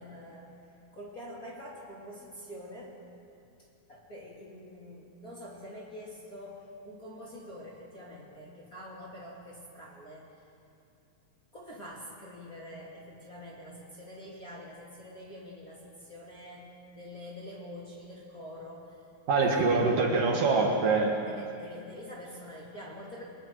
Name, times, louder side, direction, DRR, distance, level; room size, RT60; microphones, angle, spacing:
voice 1, 0.0-3.0 3.9-10.4 11.5-19.0 19.4-20.0 21.3-23.2, equal, 25° left, -5 dB, 2.9 m, -46 dB
voice 2, 19.3-21.1, right 3 dB, 60° right, 0 dB, 3.2 m, -24 dB
29.5 x 21.5 x 4.8 m, 2.6 s
omnidirectional pair, 4.5 m